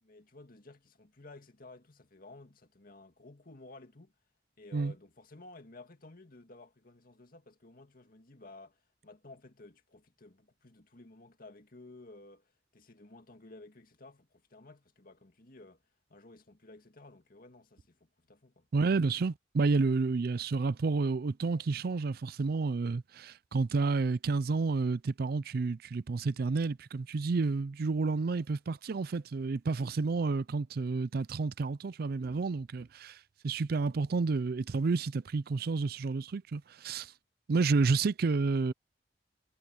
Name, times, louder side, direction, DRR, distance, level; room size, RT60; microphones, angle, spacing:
voice 1, 0.0-4.1 4.6-15.8 16.1-18.7, left 2 dB, 50° left, 2.1 m, -54 dB
voice 2, 18.7-33.2 33.4-37.1 37.5-38.7, right 4 dB, 55° right, 0.4 m, -30 dB
head